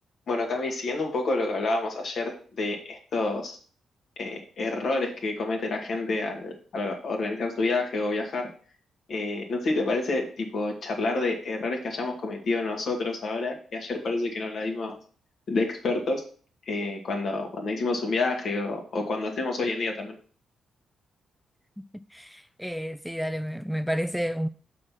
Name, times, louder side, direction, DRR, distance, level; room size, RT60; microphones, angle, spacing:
voice 1, 0.3-3.6 4.2-8.5 9.1-15.0 15.5-16.2 16.7-20.1, left 3 dB, 60° left, 1.9 m, -28 dB
voice 2, 21.8-24.5, equal, ahead, 0.4 m, -31 dB
6.5 x 4.2 x 5.9 m
hypercardioid pair, 45°, 0 cm